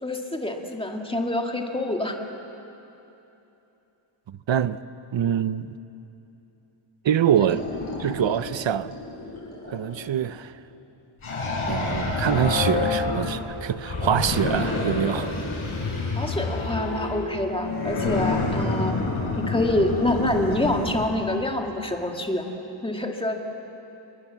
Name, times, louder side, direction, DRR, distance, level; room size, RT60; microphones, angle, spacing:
voice 1, 0.0-2.2 7.5-7.6 16.2-18.9 19.4-22.4 22.8-23.4, left 1 dB, 10° left, 2.0 m, -26 dB
voice 2, 4.3-4.8 5.1-5.8 7.0-7.7 8.0-8.9 9.7-10.5 11.7-15.3, right 9 dB, 60° right, 0.8 m, -25 dB
sound 1, 7.4-10.3 11.2-13.4 13.8-17.1 17.7-21.0, left 2 dB, 75° left, 7.7 m, -29 dB
sound 2, 12.2-15.2 15.7-15.8 16.2-18.5, left 5 dB, 50° left, 1.8 m, -31 dB
30.0 x 23.5 x 7.4 m
wide cardioid pair, 155°, 50 cm